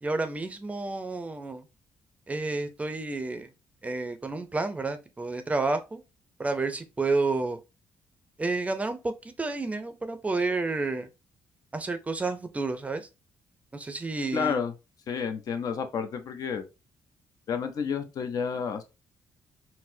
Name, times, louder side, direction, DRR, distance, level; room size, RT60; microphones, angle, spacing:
voice 1, 0.0-1.7 2.3-3.5 3.8-6.0 6.4-7.6 8.4-9.1 9.4-11.1 11.7-13.1 13.7-14.6, right 3 dB, 20° right, 0.5 m, -30 dB
voice 2, 14.3-14.7 15.1-16.6 17.5-18.8, left 6 dB, 55° left, 0.6 m, -30 dB
4.2 x 2.0 x 2.6 m
cardioid pair, 100°, 7 cm